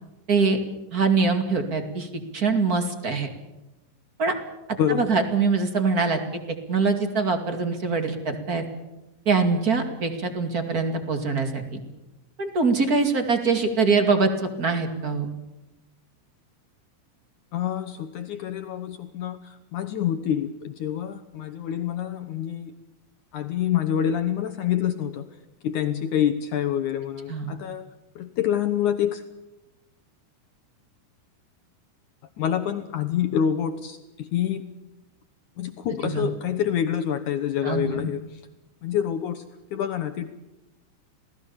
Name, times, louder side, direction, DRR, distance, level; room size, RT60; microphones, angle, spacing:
voice 1, 0.3-0.6 0.9-2.1 2.3-3.3 4.2-4.4 4.9-6.4 6.7-8.6 9.2-11.8 12.4-15.3 27.3-27.5 36.0-36.3 37.6-38.1, right 4 dB, 30° right, 7 dB, 1.7 m, -23 dB
voice 2, 17.5-22.7 23.3-25.2 25.6-27.9 28.1-29.2 32.4-34.6 35.6-38.4 38.8-39.4 39.7-40.3, left 9 dB, 80° left, 8 dB, 1.7 m, -27 dB
28.0 x 18.5 x 7.1 m, 1.0 s
omnidirectional pair, 5.1 m